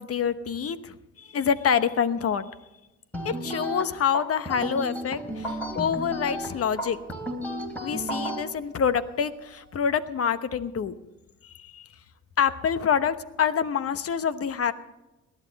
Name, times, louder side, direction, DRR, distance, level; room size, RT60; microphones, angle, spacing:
voice 1, 0.0-2.4 3.2-7.0 7.8-10.9 11.6-11.9 12.4-14.7, left 7 dB, 50° left, 12 dB, 1.0 m, -26 dB
sound 1, 3.1-8.4, equal, 5° left, 3.3 m, -33 dB
sound 2, 5.3-9.8, left 1 dB, 85° left, 4.1 m, -54 dB
18.5 x 11.5 x 4.1 m, 1.0 s
cardioid pair, 90°, 30 cm